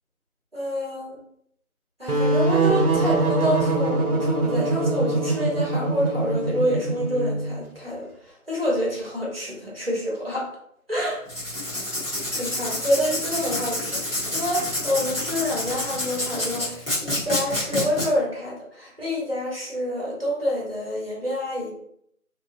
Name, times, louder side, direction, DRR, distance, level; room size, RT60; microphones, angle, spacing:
voice 1, 0.5-1.2 2.0-10.5 10.9-11.2 12.4-21.7, equal, 40° right, -4 dB, 0.9 m, -27 dB
sound 1, 2.1-7.6, right 2 dB, 85° right, 0.8 m, -23 dB
Writing, 11.3-18.1, left 1 dB, 40° left, 1.1 m, -28 dB
2.6 x 2.3 x 2.5 m, 0.69 s
figure-of-eight pair, 175°, 43 cm